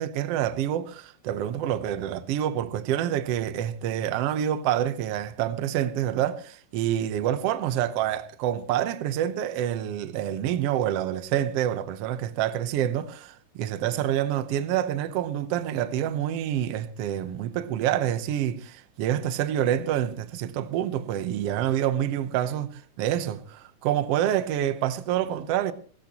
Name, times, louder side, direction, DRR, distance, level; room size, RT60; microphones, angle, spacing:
voice 1, 0.0-25.7, right 11 dB, 90° right, 1.3 m, -27 dB
18.0 x 16.5 x 2.9 m
omnidirectional pair, 4.0 m